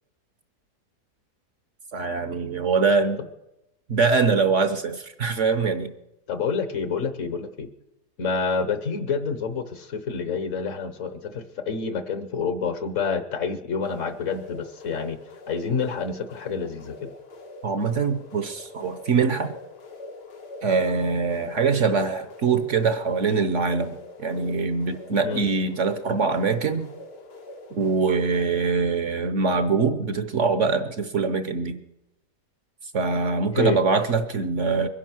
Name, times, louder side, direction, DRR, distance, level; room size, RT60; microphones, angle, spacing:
voice 1, 1.9-3.2 3.9-5.9 17.6-19.6 20.6-26.9 27.7-31.8 32.9-34.9, right 4 dB, 55° right, 10 dB, 1.0 m, -23 dB
voice 2, 6.3-7.7 8.2-15.2 15.5-17.1 25.2-25.5 33.5-33.8, left 5 dB, 55° left, 10 dB, 1.2 m, -28 dB
sound 1, 13.8-28.7, left 3 dB, 80° left, 2.2 m, -44 dB
22.5 x 10.0 x 6.1 m, 0.91 s
omnidirectional pair, 1.8 m